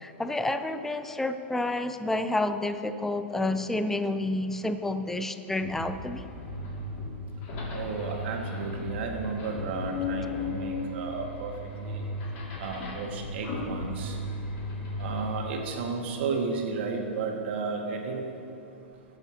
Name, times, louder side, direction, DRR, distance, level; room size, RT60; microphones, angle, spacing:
voice 1, 0.0-6.3, left 2 dB, 5° left, 9 dB, 0.4 m, -29 dB
sound 1, 5.6-15.5, left 2 dB, 45° left, 2.3 m, -35 dB
voice 2, 7.7-12.3 12.6-14.5 14.9-18.4 18.8-19.0, right 4 dB, 60° right, 1 dB, 1.6 m, -33 dB
19.0 x 7.0 x 2.8 m, 2.6 s
hypercardioid pair, 130°, 7 cm